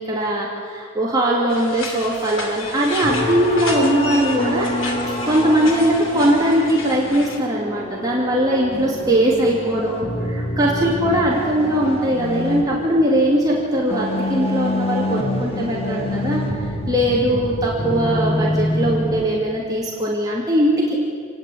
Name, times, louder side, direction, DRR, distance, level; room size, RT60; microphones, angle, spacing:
voice 1, 0.0-4.7 5.2-16.4 16.9-21.0, right 1 dB, 20° right, -4 dB, 2.6 m, -20 dB
sound 1, 1.5-7.4, left 2 dB, 70° left, 2.7 m, -32 dB
sound 2, 3.0-19.3, left 1 dB, 25° left, 1.9 m, -26 dB
28.5 x 9.5 x 9.9 m, 2.3 s
head